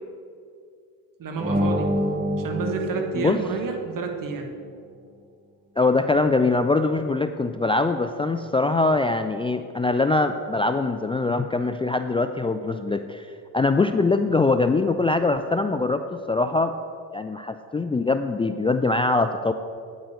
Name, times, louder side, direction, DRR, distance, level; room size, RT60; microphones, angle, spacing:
voice 1, 1.2-1.9 2.4-4.5, right 4 dB, 50° right, 4 dB, 1.7 m, -29 dB
sound 1, 1.4-4.1, equal, 20° right, 1.5 m, -27 dB
voice 2, 5.8-13.3 13.5-16.7 17.1-19.5, left 3 dB, 15° left, 8 dB, 0.4 m, -23 dB
9.3 x 8.8 x 5.1 m, 2.3 s
supercardioid pair, 75°, 41 cm